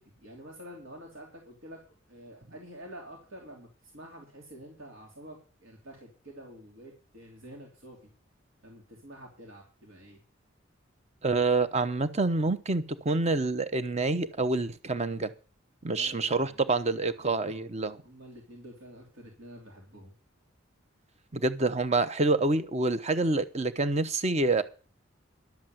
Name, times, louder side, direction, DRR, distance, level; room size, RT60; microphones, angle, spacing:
voice 1, 0.0-1.8 2.1-8.1 8.6-10.2 15.9-16.6 17.1-17.6 18.0-20.1, equal, 90° right, 0 dB, 3.3 m, -48 dB
voice 2, 11.2-15.3 15.8-18.0 21.3-24.6, right 3 dB, 35° right, 11 dB, 0.8 m, -27 dB
11.5 x 7.4 x 7.7 m, 0.37 s
head